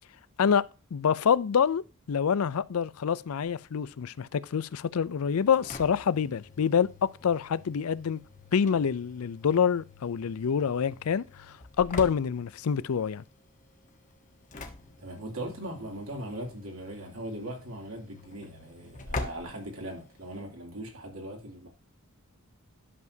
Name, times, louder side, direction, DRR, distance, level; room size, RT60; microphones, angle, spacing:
voice 1, 0.4-8.2 8.5-11.2 11.8-13.2, left 7 dB, 85° left, 0.4 m, -26 dB
Engine / Slam, 5.3-20.4, left 2 dB, 35° left, 1.2 m, -45 dB
voice 2, 15.0-21.7, right 1 dB, 70° right, 2.9 m, -39 dB
11.0 x 7.1 x 2.8 m
head